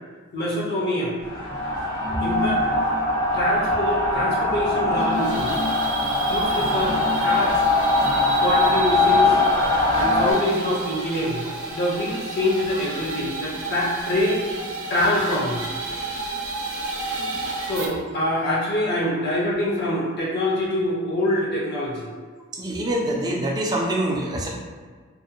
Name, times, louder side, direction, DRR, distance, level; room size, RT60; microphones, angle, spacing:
voice 1, 0.3-1.1 2.2-2.6 3.3-5.5 6.3-7.5 8.4-9.4 9.9-11.4 11.7-14.4 14.9-15.6 17.7-22.1, left 1 dB, 50° left, -5 dB, 0.6 m, -25 dB
sound 1, 1.2-10.3, left 2 dB, 90° left, 1.3 m, -21 dB
sound 2, 4.9-17.9, right 3 dB, 65° right, 0.5 m, -32 dB
voice 2, 22.5-24.5, right 1 dB, 20° right, -1 dB, 0.3 m, -25 dB
2.5 x 2.1 x 2.7 m, 1.5 s
head